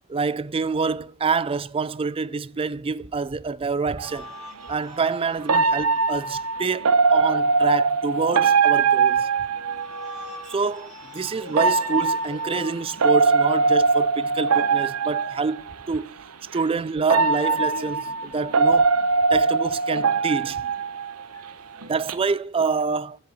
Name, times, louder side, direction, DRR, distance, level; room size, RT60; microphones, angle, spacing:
voice 1, 0.1-4.3 4.7-9.3 10.5-16.1 16.5-18.9 19.3-20.6 21.9-23.2, right 4 dB, 25° right, 0.4 m, -26 dB
sound 1, 4.0-6.7 9.7-12.7, left 1 dB, ahead, 2.6 m, -45 dB
sound 2, 4.0-4.1 5.5-10.2 11.5-15.7 16.5-16.6 17.1-21.5 21.8-22.1, right 4 dB, 85° right, 0.8 m, -21 dB
voice 2, 9.2-10.6 11.4-11.6 12.5-12.7 21.8-21.9, left 6 dB, 90° left, 1.1 m, -43 dB
7.7 x 7.6 x 8.0 m
head